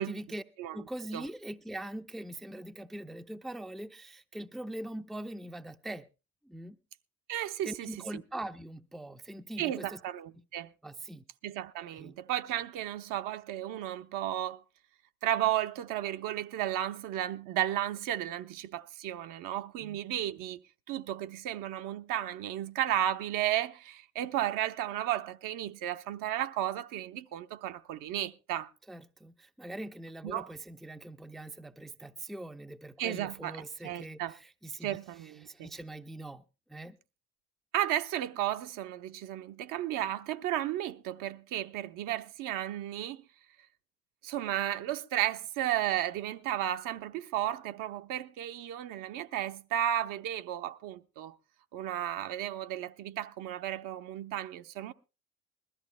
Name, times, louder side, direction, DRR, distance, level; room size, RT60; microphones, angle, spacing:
voice 1, 0.0-0.4 0.7-6.1 6.4-6.8 7.6-10.0 10.8-11.2 11.8-12.2 19.8-20.0 28.9-35.0 35.4-36.4 36.7-37.0, right 1 dB, ahead, 0.6 m, -42 dB
voice 2, 7.3-7.9 9.6-10.7 11.4-14.6 15.2-20.6 20.9-28.7 30.2-30.5 33.0-33.6 33.8-34.4 34.8-35.7 37.7-43.2 44.2-51.3 51.7-54.9, right 12 dB, 50° right, 0.9 m, -33 dB
22.0 x 13.5 x 2.2 m
figure-of-eight pair, 65°, 43 cm